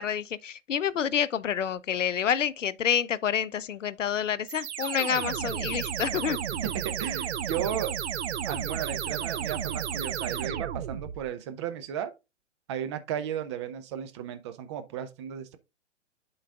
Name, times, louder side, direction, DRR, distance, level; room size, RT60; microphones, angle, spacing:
voice 1, 0.0-6.4, left 8 dB, 85° left, 0.5 m, -28 dB
sound 1, 4.5-11.3, right 9 dB, 65° right, 0.7 m, -32 dB
voice 2, 6.6-8.0 8.4-12.1 12.7-15.6, right 9 dB, 25° right, 0.5 m, -34 dB
11.5 x 3.9 x 2.4 m
figure-of-eight pair, 120°, 36 cm